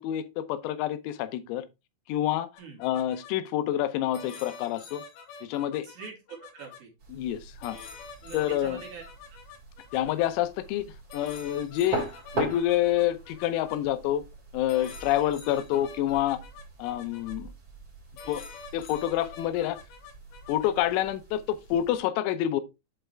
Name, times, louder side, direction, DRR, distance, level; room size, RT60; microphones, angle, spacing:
voice 1, 0.0-1.7 2.1-2.5 2.8-5.0 5.4-5.9 7.1-7.8 8.3-8.8 9.9-10.9 11.1-12.0 12.4-14.2 14.5-16.4 16.8-17.5 18.3-18.4 18.7-19.8 20.5-22.6, left 12 dB, 90° left, 3.5 m, -27 dB
sound 1, 2.6-3.3 4.1-6.8 7.6-10.3 11.1-13.8 14.7-17.4 18.2-20.7, left 5 dB, 70° left, 3.2 m, -46 dB
voice 2, 5.8-6.1 6.4-6.9 8.2-9.4 15.2-15.3, right 5 dB, 55° right, 3.6 m, -44 dB
sound 2, 7.0-22.0, right 2 dB, 30° right, 3.5 m, -41 dB
8.6 x 5.6 x 3.4 m
omnidirectional pair, 5.9 m